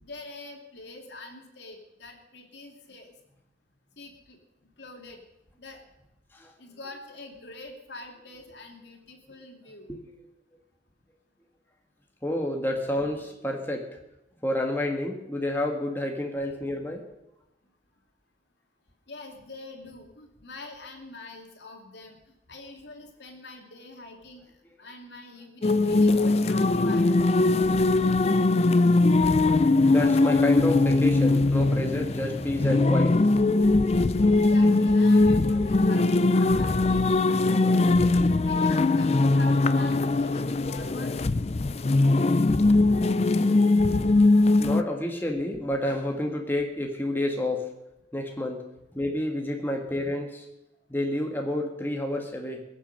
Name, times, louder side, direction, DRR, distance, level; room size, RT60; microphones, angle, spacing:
voice 1, 0.0-3.1 4.0-4.4 4.8-5.2 5.6-5.8 6.6-9.9 19.1-22.2 22.5-24.4 24.8-27.1 34.3-41.2, left 2 dB, 70° left, 2 dB, 2.7 m, -45 dB
voice 2, 12.2-13.9 14.4-17.0 28.1-28.3 29.9-33.2 44.6-47.7 48.1-48.6 48.9-50.4 50.9-52.6, left 1 dB, 10° left, 1 dB, 1.6 m, -29 dB
sound 1, 25.6-44.8, left 2 dB, 35° left, 0.4 m, -21 dB
22.0 x 7.5 x 6.5 m, 0.89 s
head